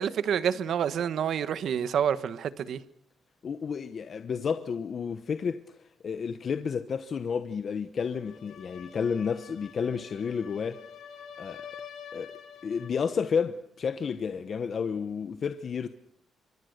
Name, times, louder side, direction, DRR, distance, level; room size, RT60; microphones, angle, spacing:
voice 1, 0.0-2.8, right 8 dB, 65° right, 1.3 m, -28 dB
voice 2, 3.4-10.8 11.4-11.7 12.1-12.3 12.6-15.9, left 6 dB, 40° left, 1.0 m, -31 dB
sound 1, 8.1-13.0, left 7 dB, 75° left, 4.1 m, -47 dB
27.5 x 24.5 x 6.7 m
wide cardioid pair, 160°, 0 cm